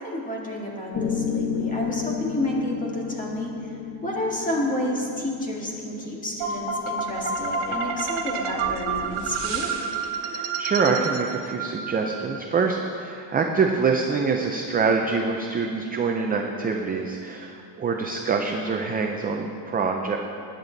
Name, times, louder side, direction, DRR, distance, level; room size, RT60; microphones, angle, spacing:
voice 1, 0.0-9.6, left 1 dB, 15° left, -2 dB, 1.9 m, -30 dB
Piano, 0.9-9.0, left 6 dB, 40° left, 1.3 m, -33 dB
sound 1, 6.4-12.5, right 5 dB, 60° right, 1.7 m, -29 dB
voice 2, 10.2-20.2, right 4 dB, 20° right, 2 dB, 0.5 m, -25 dB
20.5 x 9.0 x 4.0 m, 2.6 s
cardioid pair, 170°, 48 cm